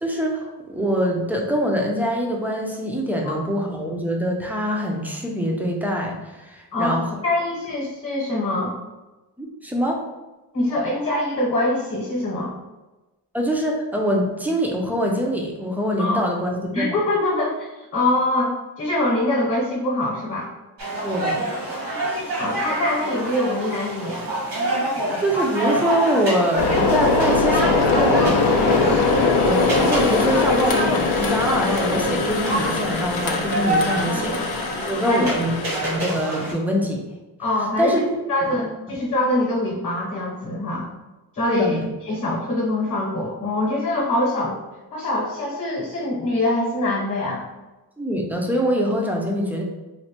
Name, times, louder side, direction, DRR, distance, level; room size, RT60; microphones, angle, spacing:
voice 1, 0.0-7.1 9.4-10.0 13.3-17.0 21.0-21.5 25.2-28.6 29.4-34.5 34.8-35.5 35.8-37.0 37.8-38.0 41.5-41.9 48.0-49.6, equal, 5° right, 0 dB, 0.3 m, -24 dB
voice 2, 6.7-8.7 10.5-12.5 16.0-16.2 16.7-18.5 18.8-20.5 22.4-24.3 28.6-28.9 34.0-34.3 35.1-35.3 37.4-37.9 38.3-40.9 41.3-41.8 42.0-44.5 44.9-47.4, left 1 dB, 35° left, -3 dB, 0.9 m, -24 dB
sound 1, 20.8-36.5, right 1 dB, 90° right, 1.4 m, -27 dB
sound 2, 26.6-36.0, left 4 dB, 70° left, 0.5 m, -21 dB
4.1 x 2.1 x 2.8 m, 1.1 s
wide cardioid pair, 165°, 41 cm